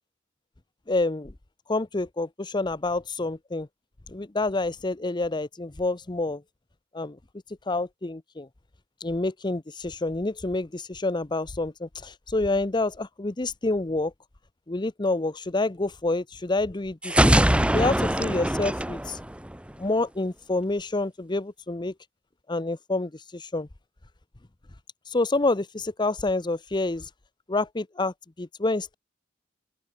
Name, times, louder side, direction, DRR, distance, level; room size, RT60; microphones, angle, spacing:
voice 1, 0.9-1.3 1.7-3.7 4.1-6.4 6.9-7.2 7.5-8.5 9.0-14.1 14.7-17.4 17.7-19.2 19.8-21.9 22.5-23.7 25.1-27.1 27.5-28.9, left 2 dB, 25° left, 0.7 m, -28 dB
sound 1, 17.0-19.9, right 1 dB, 5° right, 0.8 m, -22 dB
open air
head